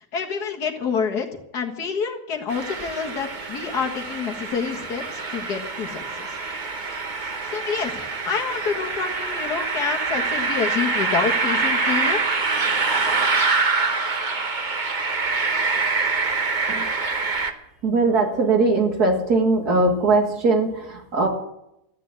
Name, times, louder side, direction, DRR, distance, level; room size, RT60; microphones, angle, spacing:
voice 1, 0.1-1.3 1.5-6.0 7.5-7.9 8.2-12.2, left 6 dB, 90° left, 2 dB, 2.2 m, -27 dB
sound 1, 2.5-17.5, right 4 dB, 35° right, 1.1 m, -25 dB
voice 2, 17.8-21.3, right 3 dB, 80° right, 2 dB, 2.7 m, -20 dB
14.0 x 9.8 x 7.9 m, 0.84 s
omnidirectional pair, 1.6 m